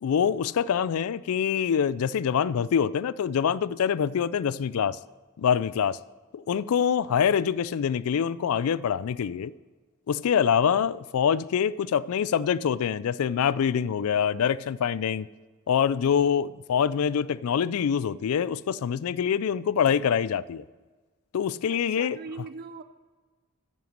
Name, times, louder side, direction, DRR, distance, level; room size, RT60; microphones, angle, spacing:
voice 1, 0.0-5.0 5.4-6.0 6.3-9.5 10.1-15.3 15.7-20.6 21.3-22.2, left 7 dB, 70° left, 0.4 m, -25 dB
voice 2, 21.7-22.8, right 4 dB, 45° right, 0.4 m, -41 dB
10.0 x 7.8 x 6.7 m
head